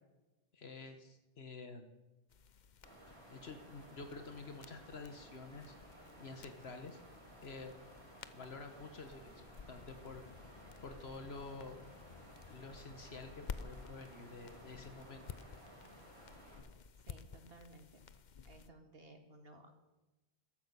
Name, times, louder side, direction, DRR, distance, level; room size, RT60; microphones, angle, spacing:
voice 1, 0.5-1.9 3.3-5.8 6.2-7.0 7.4-7.7 8.3-10.2 10.8-11.8 12.5-15.4, left 3 dB, 75° left, 7 dB, 1.4 m, -49 dB
sound 1, 2.3-18.7, left 6 dB, 50° left, 0.8 m, -54 dB
Water, 2.8-16.6, right 1 dB, 90° right, 4.7 m, -57 dB
voice 2, 17.1-17.9 18.4-19.7, right 2 dB, 65° right, 5 dB, 2.2 m, -57 dB
14.5 x 13.0 x 6.8 m, 1.1 s
omnidirectional pair, 1.1 m